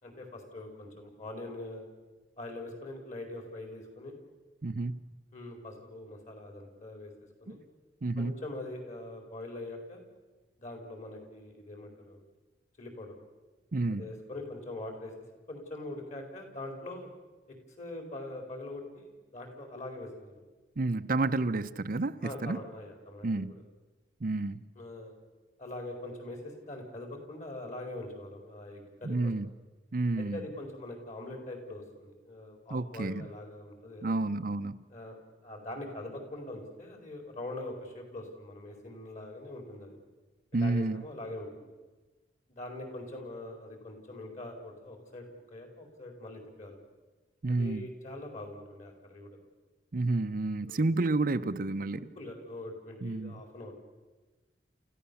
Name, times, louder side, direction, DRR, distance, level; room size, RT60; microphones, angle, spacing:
voice 1, 0.0-1.9 2.4-4.2 5.3-7.1 7.4-7.6 8.2-10.0 10.6-12.2 12.8-13.1 13.9-15.1 15.5-17.1 17.5-20.4 22.2-23.5 24.8-25.1 25.6-29.3 30.2-34.1 34.9-35.2 35.4-40.0 40.5-41.7 42.5-46.8 47.5-49.4 50.6-50.9 51.9-53.7, left 2 dB, 45° left, 4.7 m, -43 dB
voice 2, 4.6-5.1 7.5-7.6 8.0-8.4 13.7-14.1 20.8-22.6 23.2-23.5 24.2-24.6 29.0-29.5 29.9-30.4 32.7-33.3 34.0-34.8 40.5-41.0 47.4-47.8 49.9-52.1 53.0-53.4, right 2 dB, 55° right, 0.7 m, -30 dB
29.5 x 15.0 x 7.1 m
head